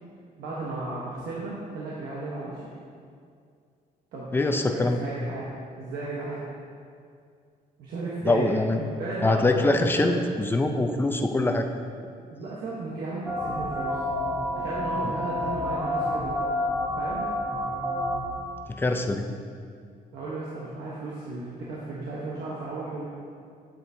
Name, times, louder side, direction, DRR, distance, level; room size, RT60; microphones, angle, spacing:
voice 1, 0.4-2.7 4.1-4.3 4.7-5.5 5.8-6.4 7.8-8.5 8.8-9.4 10.0-10.2 12.3-14.0 14.5-16.4 17.0-17.2 20.1-23.0, right 3 dB, 85° right, -6 dB, 1.2 m, -34 dB
voice 2, 4.3-5.1 8.2-8.8 9.2-11.7 18.8-19.3, left 2 dB, 15° left, 5 dB, 0.5 m, -23 dB
sound 1, 13.3-18.3, left 1 dB, 10° right, 1.1 m, -29 dB
7.7 x 7.7 x 2.7 m, 2.3 s
cardioid pair, 115°, 16 cm